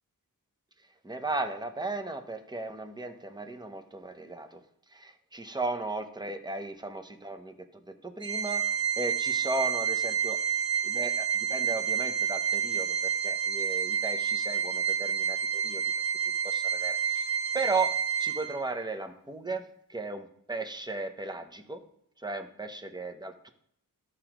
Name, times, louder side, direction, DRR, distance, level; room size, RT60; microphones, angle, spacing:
voice 1, 1.0-4.6 4.9-7.5 7.9-8.6 9.0-10.4 10.8-13.0 13.2-15.8 16.4-17.9 18.2-19.6 19.9-21.8 22.2-23.5, right 3 dB, 10° right, 6 dB, 0.8 m, -35 dB
Organ, 8.2-18.8, right 7 dB, 45° right, 1.5 m, -29 dB
13.5 x 4.9 x 3.0 m, 0.71 s
wide cardioid pair, 110°, 35 cm